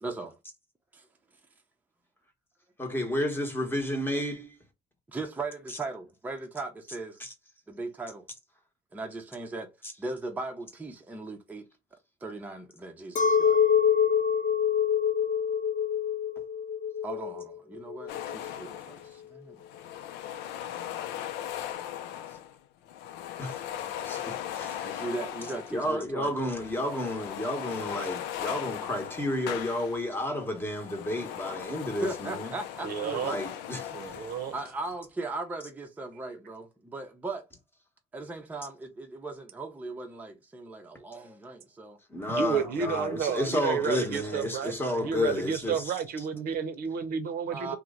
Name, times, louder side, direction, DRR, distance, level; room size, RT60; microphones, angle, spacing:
voice 1, 0.0-0.3 5.1-7.2 7.7-8.3 8.9-9.7 10.0-11.7 12.2-13.6 17.0-19.6 20.7-20.8 21.4-21.5 24.8-26.3 32.0-33.5 34.5-37.4 38.1-42.0 42.6-42.8 47.5-47.8, right 3 dB, 10° right, 0.6 m, -38 dB
voice 2, 2.8-4.6 7.2-7.3 23.4-25.1 25.7-32.5 33.2-34.4 42.1-46.0, left 1 dB, 10° left, 0.9 m, -31 dB
Chink clink, 13.2-18.6, left 7 dB, 50° left, 0.6 m, -26 dB
sound 1, 18.1-19.2 19.6-22.6 22.8-26.0 26.3-30.2 30.5-34.8, left 11 dB, 90° left, 0.4 m, -38 dB
voice 3, 32.8-33.4 33.9-34.5 42.3-47.8, right 7 dB, 65° right, 0.7 m, -31 dB
2.9 x 2.1 x 3.5 m
cardioid pair, 110°, 17 cm